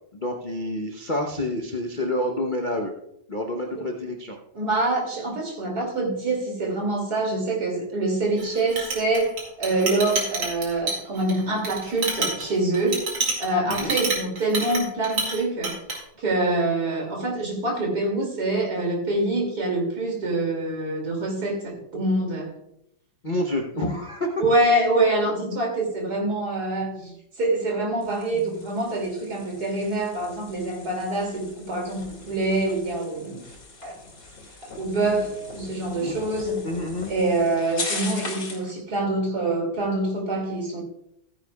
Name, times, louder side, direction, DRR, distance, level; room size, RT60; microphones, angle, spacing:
voice 1, 0.1-2.9 3.3-4.4 13.7-14.0 23.2-24.4 25.5-25.6 27.0-27.2 28.3-28.7 36.0-36.1 36.6-37.1, left 1 dB, 35° left, 2 dB, 0.8 m, -28 dB
voice 2, 4.5-13.0 13.4-15.8 16.2-22.5 23.7-24.0 24.4-27.1 27.4-33.4 33.8-33.9 34.8-36.7 37.1-40.8, right 2 dB, 50° right, 0 dB, 3.2 m, -25 dB
Chink clink, 8.4-15.4 15.6-16.0, right 3 dB, 85° right, 3.1 m, -28 dB
sound 1, 28.0-38.7, left 3 dB, 60° left, 2.8 m, -39 dB
15.0 x 9.9 x 2.3 m, 0.74 s
omnidirectional pair, 2.1 m